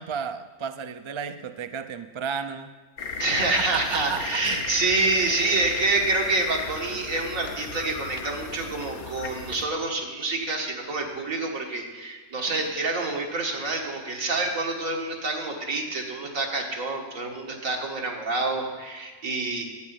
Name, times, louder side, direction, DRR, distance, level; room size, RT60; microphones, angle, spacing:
voice 1, 0.0-2.7 3.4-4.7, right 7 dB, 45° right, 9 dB, 0.4 m, -33 dB
sound 1, 3.0-9.6, left 4 dB, 50° left, 1.1 m, -35 dB
voice 2, 3.2-19.6, right 3 dB, 85° right, 1 dB, 2.2 m, -27 dB
11.0 x 8.8 x 8.3 m, 1.4 s
omnidirectional pair, 1.4 m